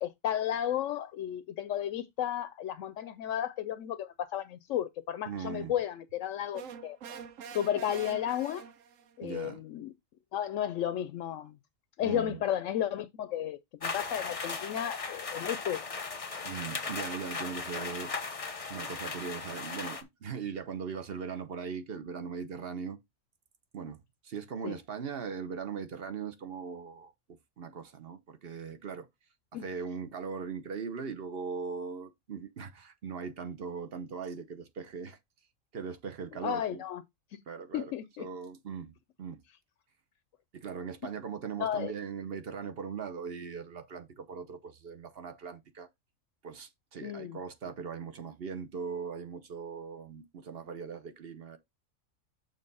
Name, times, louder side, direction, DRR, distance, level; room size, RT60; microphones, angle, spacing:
voice 1, 0.0-7.0 7.5-8.6 9.2-9.9 10.3-11.6 12.0-15.8 24.6-24.8 29.5-29.7 36.4-37.0 37.3-37.4 37.7-38.3 41.6-41.9 47.0-47.4, left 10 dB, 75° left, 0.9 m, -33 dB
voice 2, 5.3-5.7 9.2-9.6 12.0-12.4 16.4-23.0 23.7-24.0 24.2-29.1 29.5-35.2 35.7-36.8 37.5-37.9 38.2-39.4 40.5-45.9 46.4-51.6, right 6 dB, 50° right, 1.0 m, -40 dB
sound 1, 6.5-9.2, right 7 dB, 75° right, 1.1 m, -45 dB
sound 2, 13.8-20.0, left 4 dB, 30° left, 0.8 m, -37 dB
6.7 x 3.5 x 5.4 m
omnidirectional pair, 1.4 m